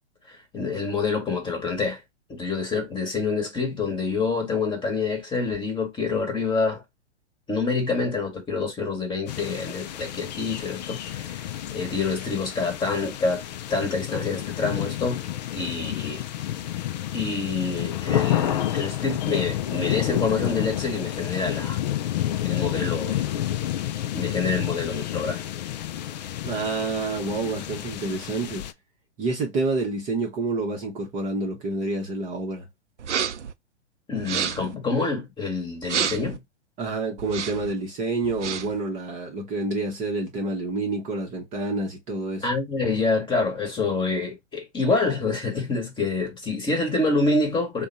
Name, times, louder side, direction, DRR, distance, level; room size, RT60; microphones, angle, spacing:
voice 1, 0.3-2.0 2.3-6.8 7.5-11.0 11.3-11.4 11.7-13.4 13.7-15.2 15.5-16.2 17.1-21.8 22.4-23.3 24.1-25.4 34.1-36.4 42.4-47.9, left 3 dB, 15° left, 1.2 m, -27 dB
sound 1, 9.3-28.7, left 12 dB, 40° left, 0.4 m, -30 dB
voice 2, 26.4-28.6 29.2-32.7 36.8-42.5, right 3 dB, 20° right, 0.8 m, -28 dB
sound 2, 33.0-33.5 34.2-34.7 35.8-36.4 37.2-37.7 38.2-38.8, right 8 dB, 90° right, 0.6 m, -29 dB
3.5 x 2.3 x 4.0 m
hypercardioid pair, 125°, 34 cm